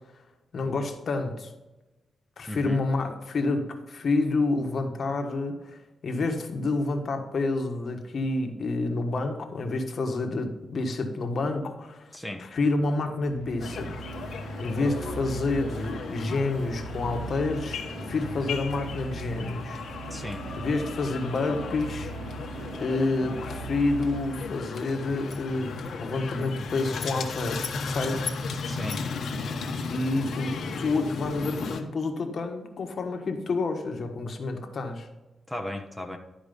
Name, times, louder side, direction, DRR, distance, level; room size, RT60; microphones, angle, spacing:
voice 1, 0.5-1.5 2.4-13.9 14.6-19.8 20.6-22.5 22.8-28.3 29.9-35.1, left 3 dB, 55° left, 4 dB, 1.4 m, -29 dB
voice 2, 2.5-2.8 12.1-12.4 20.1-20.4 28.6-29.0 35.5-36.2, left 1 dB, ahead, 2 dB, 1.0 m, -35 dB
sound 1, 13.2-24.9, right 4 dB, 80° right, 0.6 m, -41 dB
sound 2, 13.6-31.8, left 4 dB, 70° left, 1.2 m, -35 dB
12.0 x 4.8 x 5.3 m, 1.1 s
cardioid pair, 105°, 0 cm